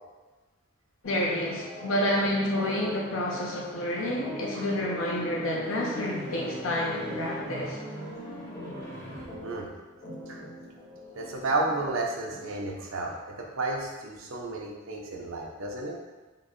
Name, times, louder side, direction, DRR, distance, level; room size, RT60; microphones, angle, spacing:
voice 1, 1.0-7.8, left 1 dB, 75° left, -3 dB, 0.6 m, -29 dB
sound 1, 1.0-12.8, equal, 45° left, 1.1 m, -42 dB
sound 2, 2.2-2.4 4.3-9.4, equal, 15° left, 0.8 m, -42 dB
voice 2, 11.2-16.0, right 2 dB, 80° right, 0 dB, 0.6 m, -32 dB
3.7 x 2.1 x 3.6 m, 1.2 s
head